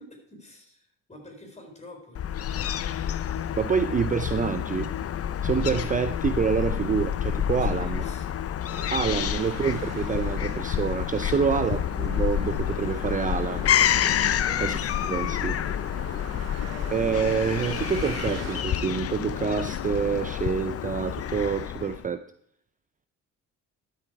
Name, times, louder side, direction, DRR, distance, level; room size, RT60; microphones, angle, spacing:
voice 1, 0.0-2.8 7.6-8.3 11.3-11.6 14.3-14.7, left 1 dB, 25° left, 2 dB, 4.4 m, -47 dB
Fowl / Gull seagull, 2.1-22.0, left 9 dB, 50° left, 0.6 m, -28 dB
voice 2, 3.6-4.9 5.4-8.0 8.9-13.7 14.6-14.8 15.1-15.6 16.9-22.2, right 6 dB, 25° right, 10 dB, 0.5 m, -27 dB
sound 1, 8.7-18.6, right 7 dB, 60° right, 1.3 m, -43 dB
12.0 x 7.9 x 4.7 m, 0.69 s
cardioid pair, 90°, 30 cm